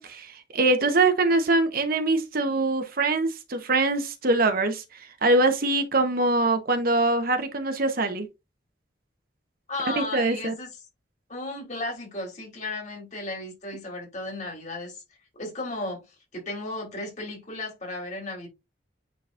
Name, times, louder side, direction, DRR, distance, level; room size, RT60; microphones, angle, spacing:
voice 1, 0.0-4.8 5.2-8.3 10.0-10.5, right 2 dB, 55° right, 1.1 m, -23 dB
voice 2, 9.7-10.7 11.3-15.0 15.4-16.0 16.3-18.5, left 2 dB, 40° left, 3.4 m, -34 dB
9.3 x 4.0 x 2.5 m
head